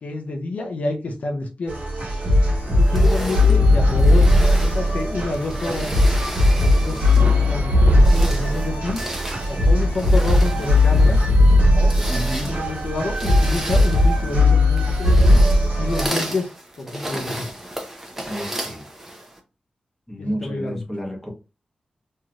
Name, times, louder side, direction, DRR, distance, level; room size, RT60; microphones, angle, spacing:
voice 1, 0.0-1.7 2.8-5.9 6.5-7.0 7.4-9.0 9.5-11.2 11.7-12.0 12.3-15.4 15.8-16.5 16.8-17.5 20.2-20.8, left 2 dB, 70° left, 0.6 m, -28 dB
sound 1, 1.7-16.1, left 1 dB, 75° right, 1.4 m, -17 dB
sound 2, 2.7-14.4, right 2 dB, 55° right, 0.6 m, -38 dB
sound 3, 2.8-7.4 7.9-19.4, right 1 dB, 10° right, 0.7 m, -34 dB
voice 2, 12.1-12.5 18.2-18.9 20.1-21.3, equal, 5° left, 1.0 m, -30 dB
3.1 x 2.7 x 2.4 m
wide cardioid pair, 140°, 3 cm